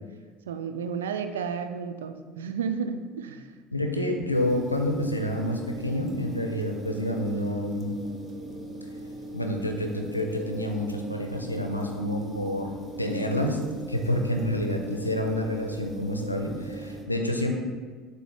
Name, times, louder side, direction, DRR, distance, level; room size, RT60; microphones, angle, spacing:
voice 1, 0.5-3.4, right 6 dB, 70° right, 8 dB, 0.4 m, -32 dB
voice 2, 3.7-7.9 9.3-12.7 13.0-13.6 13.9-17.5, left 1 dB, 90° left, 3 dB, 0.6 m, -28 dB
sound 1, 4.3-17.0, right 1 dB, 20° right, 1.1 m, -39 dB
7.9 x 2.8 x 5.8 m, 1.5 s
figure-of-eight pair, 65°, 0 cm